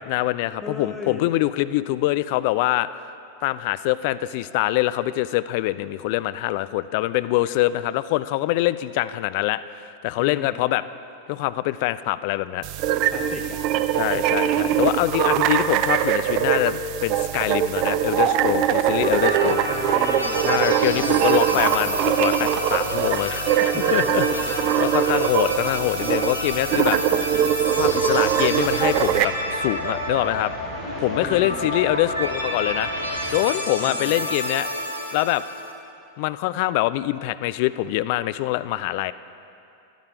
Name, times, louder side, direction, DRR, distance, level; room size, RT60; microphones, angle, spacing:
voice 1, 0.0-2.9 3.4-10.8 11.3-12.6 14.0-19.6 20.4-24.3 24.8-27.0 27.7-30.5 31.0-32.9 33.3-34.7 35.1-35.4 36.2-39.1, left 16 dB, 45° left, 15 dB, 0.3 m, -24 dB
voice 2, 0.6-1.3 10.2-10.7 13.1-14.4 19.3-21.7 23.7-24.9 31.2-31.8 33.8-34.2, left 2 dB, 5° left, 0 dB, 1.1 m, -38 dB
sound 1, 12.6-29.2, right 10 dB, 40° right, 0.5 m, -22 dB
sound 2, 18.8-35.7, equal, 85° right, 1.2 m, -29 dB
sound 3, 27.8-33.4, equal, 15° right, 2.6 m, -38 dB
13.0 x 11.5 x 4.8 m, 2.6 s
figure-of-eight pair, 90°, 0 cm